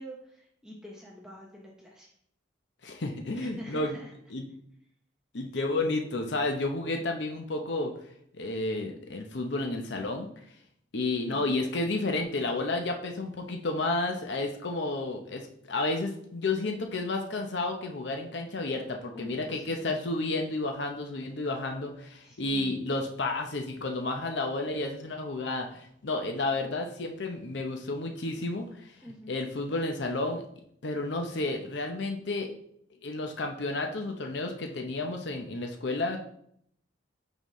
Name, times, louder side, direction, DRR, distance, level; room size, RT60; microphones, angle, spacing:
voice 1, 0.0-2.1 3.3-4.1 11.3-11.6 19.1-19.9 22.2-22.7 29.0-29.3, equal, 5° right, -3 dB, 0.7 m, -46 dB
voice 2, 2.8-4.0 4.3-4.5 5.3-7.9 8.3-10.3 10.9-30.4 30.8-32.5 33.0-36.2, left 2 dB, 60° left, 3 dB, 0.7 m, -31 dB
8.9 x 4.0 x 3.1 m, 0.68 s
head